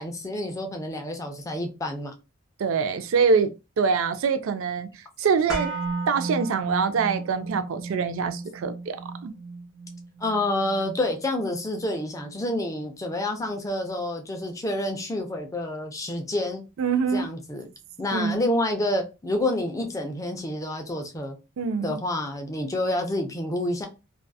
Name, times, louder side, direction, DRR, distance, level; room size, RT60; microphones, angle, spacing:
voice 1, 0.0-2.1 10.2-16.6 17.1-17.7 18.0-21.4 21.8-23.9, left 1 dB, 15° left, 0.4 m, -28 dB
voice 2, 2.6-3.5 3.8-4.9 5.2-5.7 6.1-9.3 16.8-17.3 18.1-18.4 21.6-22.0, right 5 dB, 65° right, 0.3 m, -24 dB
sound 1, 5.5-13.6 13.9-14.0, right 3 dB, 5° right, 0.9 m, -35 dB
2.6 x 2.3 x 2.2 m
head